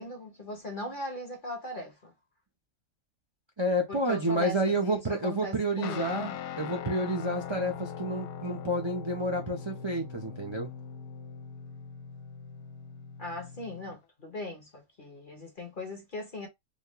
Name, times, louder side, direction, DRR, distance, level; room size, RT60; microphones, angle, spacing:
voice 1, 0.0-2.1 3.9-6.4 13.2-16.5, left 1 dB, 40° left, 0.9 m, -39 dB
voice 2, 3.6-10.7, right 1 dB, 30° right, 0.5 m, -30 dB
Guitar, 5.8-14.0, left 7 dB, 75° left, 1.0 m, -41 dB
4.2 x 2.3 x 3.0 m
omnidirectional pair, 1.7 m